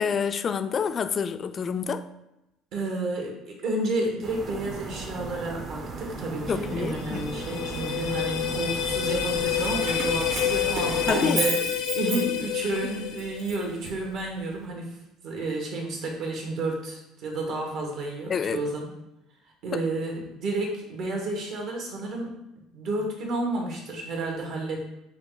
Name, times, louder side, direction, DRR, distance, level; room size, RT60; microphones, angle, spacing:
voice 1, 0.0-2.0 6.5-7.3 11.1-11.5 18.3-18.6 19.7-19.8, left 6 dB, 35° left, 10 dB, 0.3 m, -28 dB
voice 2, 2.7-15.0 15.2-18.9 19.6-22.3 22.7-24.9, right 2 dB, 65° right, 1 dB, 1.3 m, -31 dB
sound 1, 4.2-11.1, right 3 dB, 40° right, 0.7 m, -37 dB
sound 2, 6.7-13.8, left 11 dB, 85° left, 0.6 m, -29 dB
Keys jangling, 9.6-12.7 13.2-14.5, right 3 dB, 85° right, 1.1 m, -32 dB
5.7 x 2.4 x 3.8 m, 0.90 s
cardioid pair, 115°, 0 cm